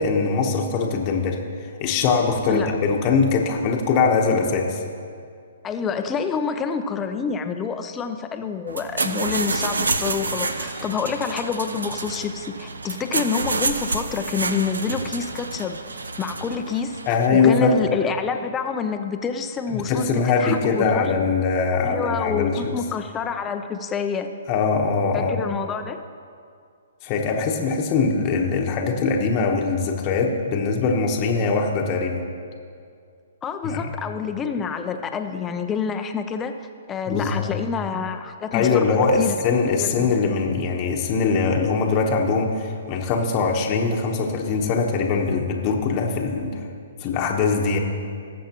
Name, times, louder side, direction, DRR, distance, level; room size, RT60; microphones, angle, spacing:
voice 1, 0.0-1.4 1.8-4.8 10.7-10.8 17.1-17.8 19.7-22.7 24.5-25.3 27.0-32.2 33.6-33.9 37.1-37.5 38.5-46.6 47.0-47.8, left 4 dB, 35° left, 1 dB, 1.1 m, -22 dB
voice 2, 5.6-15.8 16.2-17.0 17.3-21.1 21.8-24.3 25.1-26.0 33.4-36.5 36.9-39.3 39.8-40.1, left 6 dB, 20° left, 7 dB, 0.7 m, -27 dB
sound 1, 8.7-17.3, right 3 dB, 85° right, 0.7 m, -28 dB
19.5 x 7.3 x 3.0 m, 2.3 s
hypercardioid pair, 130°, 0 cm